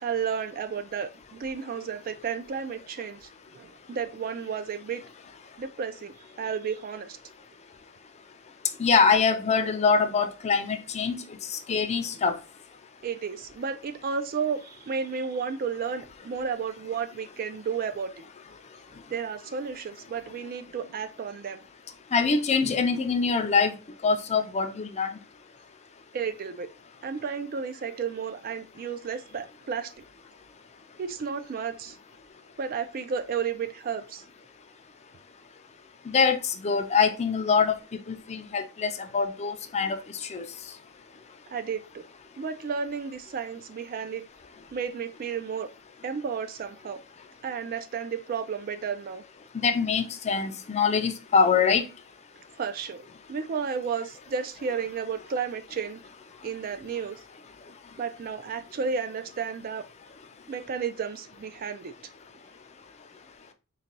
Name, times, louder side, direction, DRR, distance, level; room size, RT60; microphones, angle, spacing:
voice 1, 0.0-5.0 5.6-7.2 11.7-11.8 13.0-18.2 19.1-21.6 26.1-26.7 27.0-29.9 31.0-32.0 32.6-34.2 41.5-42.1 42.4-44.2 44.7-45.7 46.0-47.0 47.4-49.2 52.5-56.0 56.4-57.2 58.0-59.8 60.5-61.9, right 6 dB, 40° right, 0.3 m, -32 dB
voice 2, 8.8-11.2 11.5-12.4 22.1-23.7 24.0-25.1 36.1-37.7 38.1-40.0 40.3-40.4 49.6-51.9, left 5 dB, 30° left, 0.4 m, -24 dB
4.0 x 2.2 x 3.8 m
head